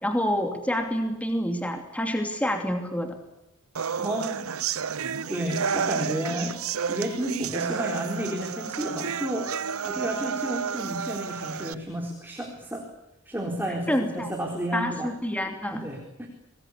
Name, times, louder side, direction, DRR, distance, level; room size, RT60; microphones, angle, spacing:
voice 1, 0.0-3.2 13.9-14.3 14.7-15.9, equal, 5° left, 5 dB, 2.8 m, -27 dB
sound 1, 3.8-11.7, right 6 dB, 70° right, 0.9 m, -31 dB
voice 2, 4.0-4.5 5.0-6.6 6.9-9.5 9.8-12.9 13.3-15.1 15.7-16.3, right 1 dB, 10° right, 1 dB, 4.2 m, -32 dB
27.5 x 21.0 x 8.4 m, 0.91 s
head